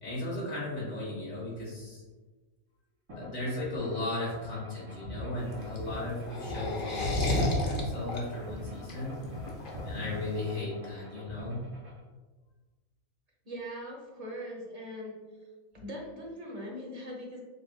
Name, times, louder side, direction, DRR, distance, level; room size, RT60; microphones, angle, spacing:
voice 1, 0.0-2.0 3.2-9.2 9.8-11.6, left 2 dB, 70° left, -6 dB, 1.9 m, -36 dB
sound 1, 3.1-12.0, left 1 dB, 80° right, 2.1 m, -42 dB
sound 2, 5.4-10.6, left 1 dB, 45° left, 0.8 m, -32 dB
voice 2, 13.5-15.2 15.7-17.4, equal, 35° right, -1 dB, 0.7 m, -40 dB
6.7 x 2.5 x 2.3 m, 1.3 s
omnidirectional pair, 1.5 m